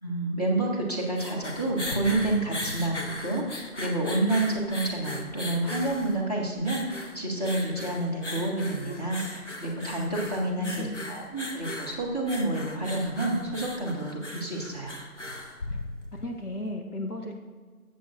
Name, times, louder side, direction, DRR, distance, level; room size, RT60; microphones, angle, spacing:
voice 1, 0.0-15.0, right 2 dB, 25° left, -4 dB, 1.5 m, -29 dB
sound 1, 0.9-16.3, left 1 dB, 50° left, 1.2 m, -38 dB
voice 2, 10.0-11.1 16.2-17.3, left 2 dB, 80° left, 1 dB, 1.4 m, -35 dB
14.5 x 7.5 x 2.5 m, 1.5 s
figure-of-eight pair, 170°, 45 cm